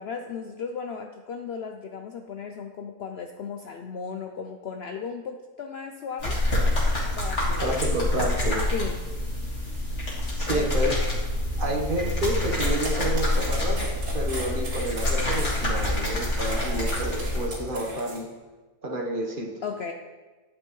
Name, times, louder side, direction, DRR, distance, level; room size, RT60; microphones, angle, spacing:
voice 1, 0.0-6.4 7.2-7.7 8.7-9.0 10.5-10.7 19.6-19.9, left 6 dB, 90° left, 5 dB, 0.5 m, -35 dB
sound 1, 6.2-17.5, left 1 dB, 45° left, 2.2 m, -26 dB
voice 2, 7.6-8.6 10.4-11.0 11.6-18.3 18.8-19.5, right 1 dB, 35° right, 0 dB, 1.2 m, -29 dB
sound 2, 12.4-18.2, right 2 dB, 60° right, 2.7 m, -38 dB
10.0 x 8.7 x 3.1 m, 1.3 s
omnidirectional pair, 1.7 m